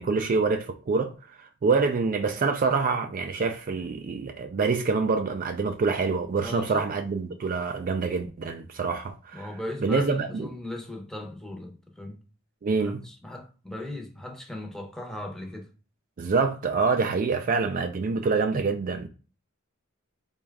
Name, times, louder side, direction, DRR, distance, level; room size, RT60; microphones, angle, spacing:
voice 1, 0.0-10.5 12.6-13.0 16.2-19.1, right 4 dB, 45° right, 0.4 m, -26 dB
voice 2, 6.4-6.9 9.3-12.2 12.8-15.7, left 1 dB, 5° left, 0.7 m, -38 dB
4.2 x 2.3 x 3.4 m
head